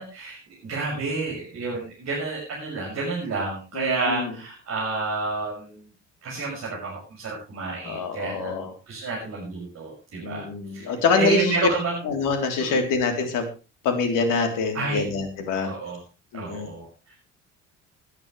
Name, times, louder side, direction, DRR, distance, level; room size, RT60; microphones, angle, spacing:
voice 1, 0.0-5.9 6.2-8.5 8.9-10.5 10.7-12.0 12.6-12.8 14.7-15.0 15.5-16.0 16.3-16.9, right 3 dB, 45° right, -4 dB, 6.7 m, -30 dB
voice 2, 3.7-4.3 7.9-8.7 10.2-11.6 12.0-13.5 13.8-15.7 16.3-16.7, left 4 dB, 55° left, 6 dB, 3.6 m, -25 dB
20.5 x 11.0 x 3.3 m, 0.31 s
figure-of-eight pair, 55°, 37 cm